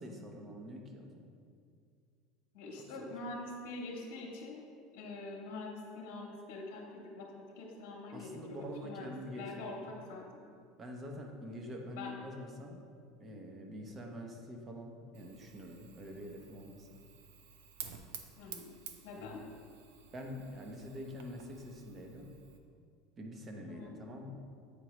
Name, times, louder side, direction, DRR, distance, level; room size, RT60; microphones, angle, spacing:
voice 1, 0.0-1.4 8.1-9.8 10.8-12.9 13.2-16.9 19.1-19.3 20.1-22.3 23.2-24.4, equal, 30° right, 2 dB, 1.0 m, -45 dB
voice 2, 2.5-4.6 4.9-9.8 10.1-10.4 11.9-12.1 18.4-18.8 19.0-19.4 23.7-24.0, left 2 dB, 70° left, -3 dB, 1.1 m, -45 dB
Fire, 15.1-22.6, right 8 dB, 80° right, 0.5 m, -52 dB
8.4 x 4.7 x 3.1 m, 2.2 s
supercardioid pair, 110°, 0 cm